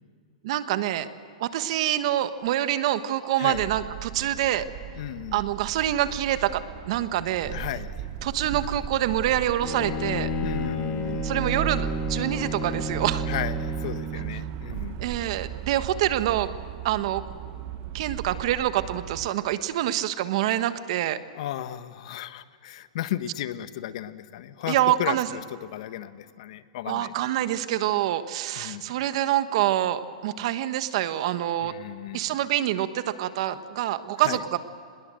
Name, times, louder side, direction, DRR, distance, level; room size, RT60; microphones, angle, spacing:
voice 1, 0.4-1.1 1.4-4.6 5.3-7.5 8.2-10.3 11.2-13.3 15.0-16.5 16.8-17.2 17.9-21.2 24.7-25.3 26.9-31.7 32.1-34.6, right 13 dB, 55° right, 11 dB, 1.4 m, -26 dB
sound 1, 3.5-19.3, right 11 dB, 40° right, 1.2 m, -36 dB
voice 2, 5.0-5.4 7.4-8.0 10.4-11.3 13.3-15.0 21.3-27.1 28.6-28.8 31.6-32.4 34.2-34.4, left 12 dB, 60° left, 12 dB, 1.2 m, -34 dB
Bowed string instrument, 9.6-14.4, left 2 dB, 30° left, 2.3 m, -31 dB
25.5 x 21.0 x 7.7 m, 2.3 s
hypercardioid pair, 145°, 4 cm